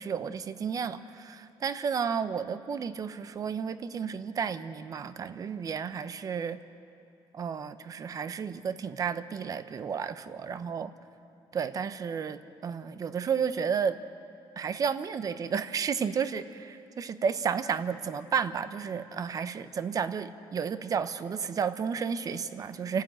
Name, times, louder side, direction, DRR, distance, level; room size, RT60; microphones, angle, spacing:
voice 1, 0.0-6.6 7.3-10.9 11.5-14.0 14.6-23.0, right 6 dB, 35° right, 12 dB, 0.8 m, -32 dB
29.5 x 12.5 x 8.8 m, 2.6 s
cardioid pair, 140°, 10 cm